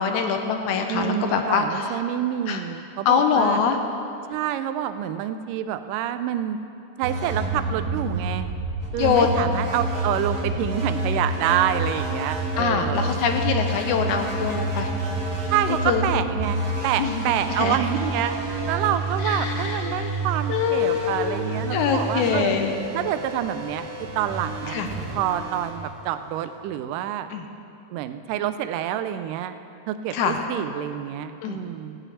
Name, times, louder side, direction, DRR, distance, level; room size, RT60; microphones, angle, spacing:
voice 1, 0.0-1.8 2.5-2.6 3.1-3.8 9.0-9.4 12.6-14.9 15.9-16.0 17.0-17.2 17.6-17.8 19.3-20.1 20.5-21.4 21.7-22.8 24.7-24.9 27.3-27.4 30.1-30.4 31.4-31.6, left 7 dB, 75° left, 5 dB, 2.0 m, -23 dB
voice 2, 0.9-3.6 4.3-6.6 7.0-8.5 8.9-13.1 15.5-22.6 22.9-24.8 25.1-27.3 27.9-29.5 29.9-32.0, right 11 dB, 85° right, 10 dB, 2.1 m, -27 dB
sound 1, 7.0-26.6, right 2 dB, 40° right, 1.6 m, -29 dB
15.0 x 5.6 x 8.3 m, 2.7 s
omnidirectional pair, 3.8 m